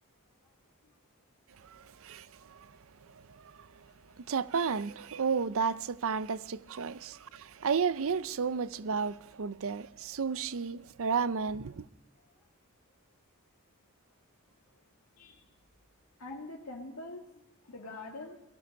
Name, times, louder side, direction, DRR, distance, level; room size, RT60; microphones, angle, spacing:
voice 1, 1.6-2.7 3.0-3.9 4.2-11.9, right 5 dB, 65° right, 0.6 m, -33 dB
voice 2, 16.2-18.4, left 2 dB, 80° left, 2.0 m, -44 dB
18.5 x 14.0 x 5.3 m
head